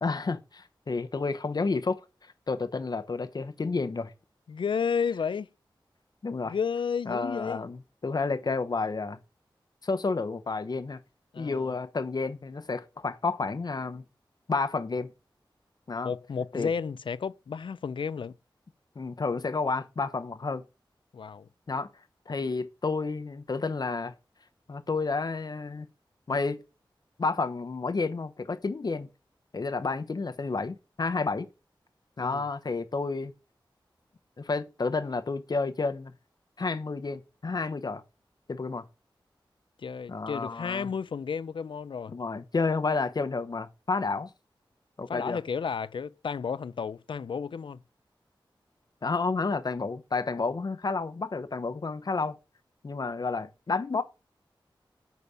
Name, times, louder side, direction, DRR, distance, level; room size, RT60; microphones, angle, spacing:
voice 1, 0.0-4.1 6.2-6.5 7.1-9.2 9.8-11.0 11.4-14.0 14.5-15.1 15.9-16.1 16.5-16.7 19.0-20.6 21.7-21.9 22.3-24.1 24.7-25.9 26.3-26.6 27.2-29.1 29.5-31.5 32.2-33.3 34.4-36.1 36.6-38.0 38.5-38.8 40.1-40.9 42.1-44.3 45.0-45.4 49.0-52.3 52.8-54.0, left 4 dB, 50° left, 0.8 m, -30 dB
voice 2, 4.5-5.5 6.5-7.6 11.3-11.7 16.0-18.3 21.1-21.5 32.2-32.5 39.8-42.2 45.1-47.8, left 6 dB, 70° left, 0.4 m, -32 dB
8.1 x 4.2 x 5.4 m
wide cardioid pair, 90°, 9 cm